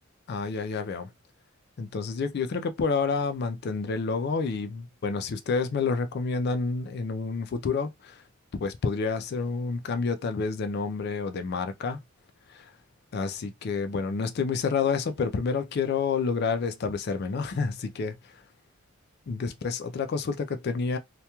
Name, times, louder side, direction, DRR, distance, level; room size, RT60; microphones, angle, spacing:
voice 1, 0.3-1.1 1.8-8.2 8.5-12.0 12.5-12.7 13.1-18.4 19.3-21.0, left 4 dB, 50° left, 0.4 m, -29 dB
2.9 x 2.2 x 2.2 m
head